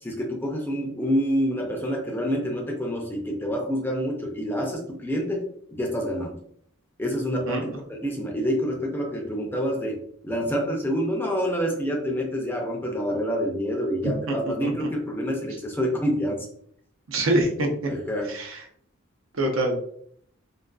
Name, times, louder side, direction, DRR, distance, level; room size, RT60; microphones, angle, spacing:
voice 1, 0.0-5.4 5.7-6.4 7.0-16.5 17.9-18.3, equal, 10° left, 0 dB, 0.4 m, -27 dB
voice 2, 7.5-7.8 14.0-14.1 14.6-14.9 17.1-17.7 18.3-18.6 19.4-19.8, right 1 dB, 90° right, 2 dB, 0.6 m, -25 dB
2.4 x 2.3 x 2.3 m, 0.64 s
head